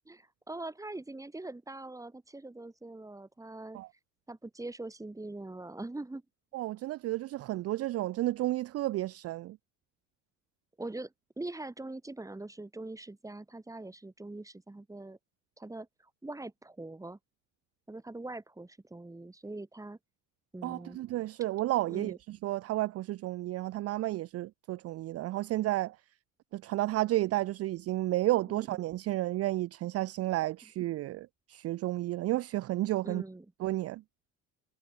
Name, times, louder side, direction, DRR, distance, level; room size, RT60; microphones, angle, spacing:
voice 1, 0.1-3.8 4.3-6.2 10.8-15.2 15.6-15.9 16.2-17.2 17.9-20.0 20.5-21.0 21.9-22.2 28.5-28.8 33.0-33.5, right 2 dB, 10° right, 3.6 m, -42 dB
voice 2, 6.5-9.6 20.6-26.0 26.5-33.2 33.6-34.0, right 16 dB, 50° right, 0.4 m, -32 dB
cardioid pair, 120°, 32 cm